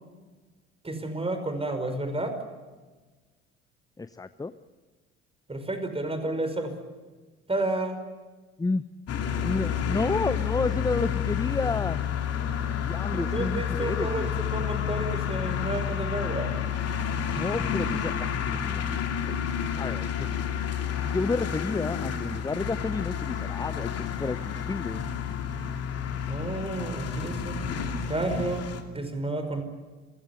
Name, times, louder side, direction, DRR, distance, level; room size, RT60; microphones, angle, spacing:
voice 1, 0.8-2.4 5.5-6.7 7.5-8.0 13.1-16.6 26.3-27.7 28.1-28.7 28.9-29.6, right 2 dB, 15° right, 8 dB, 5.3 m, -31 dB
voice 2, 4.0-4.5 8.6-8.8 9.4-12.0 12.8-14.4 17.3-18.8 19.3-19.4 19.8-20.4 21.0-23.9 24.2-25.0, left 3 dB, 10° left, 13 dB, 0.8 m, -31 dB
sound 1, 9.1-28.8, left 8 dB, 45° left, 2.7 m, -30 dB
28.0 x 16.5 x 8.4 m, 1.3 s
hypercardioid pair, 60°, 34 cm